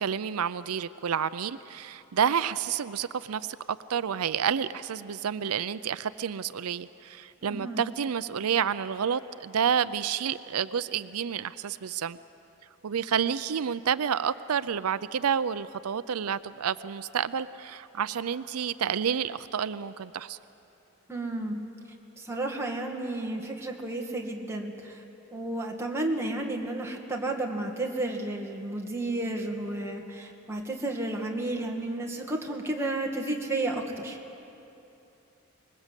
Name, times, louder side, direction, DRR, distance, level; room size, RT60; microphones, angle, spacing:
voice 1, 0.0-12.2 12.8-20.4, right 7 dB, 90° right, 0.5 m, -29 dB
voice 2, 7.4-7.8 21.1-21.6 22.2-25.0 25.3-34.2, right 2 dB, 10° right, 2.1 m, -32 dB
25.5 x 21.0 x 8.2 m
head